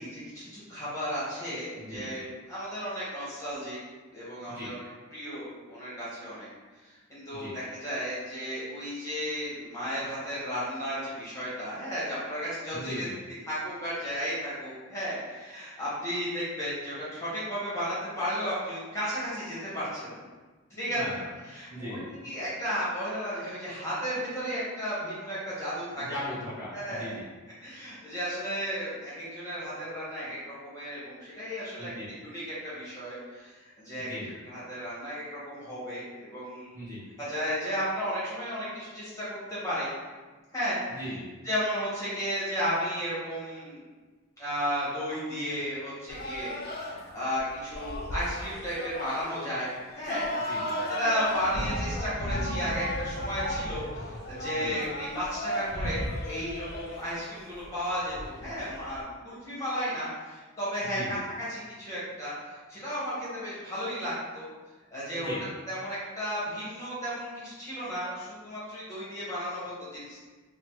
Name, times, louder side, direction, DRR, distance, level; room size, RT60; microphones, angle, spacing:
voice 1, 0.0-3.8 4.1-4.8 5.1-6.5 6.8-13.1 13.5-20.3 20.8-21.0 21.4-26.1 26.7-27.1 27.6-33.5 33.8-34.2 34.4-36.8 37.2-39.9 40.5-40.8 41.4-43.8 44.4-46.6 46.8-49.7 49.9-50.3 50.9-64.5 64.9-65.3 65.7-70.2, equal, 15° left, -10 dB, 1.0 m, -34 dB
voice 2, 1.8-2.1 4.5-4.7 7.3-7.6 12.7-13.1 20.9-21.2 21.7-22.1 26.0-27.2 31.8-32.1 34.0-34.4 36.7-37.0 40.9-41.3 50.5-50.8 54.5-54.8 60.9-61.2 65.1-65.4, equal, 10° right, -11 dB, 0.8 m, -38 dB
sound 1, 46.1-59.0, equal, 45° left, 0.4 m, -35 dB
3.0 x 2.1 x 3.0 m, 1.3 s
head